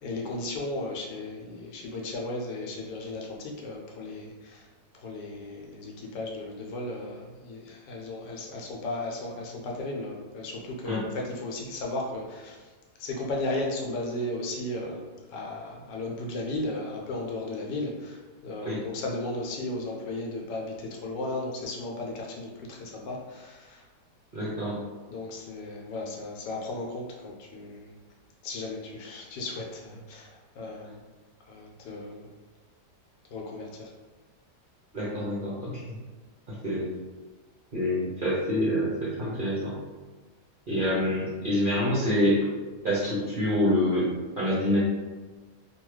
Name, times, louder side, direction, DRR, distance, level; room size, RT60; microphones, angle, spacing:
voice 1, 0.0-4.7 4.9-12.7 13.0-15.0 15.3-23.8 25.1-27.9 28.4-31.0 31.5-32.3 33.3-33.9, left 2 dB, 85° left, -1 dB, 1.3 m, -35 dB
voice 2, 24.3-24.8 34.9-36.0 36.6-36.9 37.7-39.7 40.7-42.5 42.8-44.8, equal, 60° right, -8 dB, 0.5 m, -26 dB
3.1 x 2.3 x 3.1 m, 1.3 s
omnidirectional pair, 1.8 m